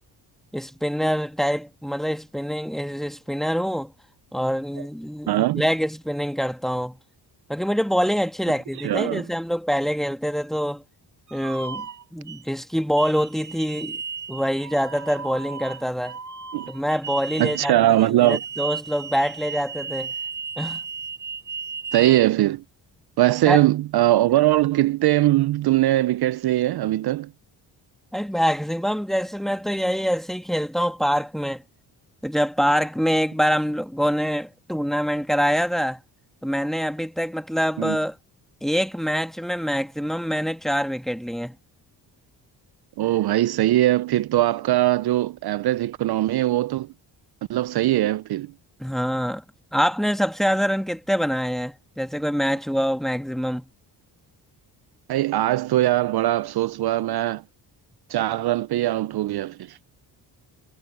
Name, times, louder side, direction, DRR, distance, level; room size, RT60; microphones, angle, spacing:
voice 1, 0.5-3.9 4.3-7.0 7.5-10.8 11.3-11.9 12.1-14.0 14.3-16.2 16.7-20.1 20.6-20.8 23.5-23.6 28.1-31.6 32.2-36.0 36.4-38.2 38.6-41.6 48.8-49.4 49.7-53.7, equal, ahead, 1.9 m, -25 dB
voice 2, 5.3-5.6 8.8-9.2 16.5-16.7 17.4-18.4 21.9-22.6 23.2-27.3 37.8-38.0 43.0-46.9 47.5-48.5 55.1-57.4 58.1-59.8, right 15 dB, 60° right, 0.5 m, -21 dB
sound 1, 11.3-12.4 13.0-17.8 18.3-22.2, right 6 dB, 45° right, 2.2 m, -35 dB
cardioid pair, 80°, 43 cm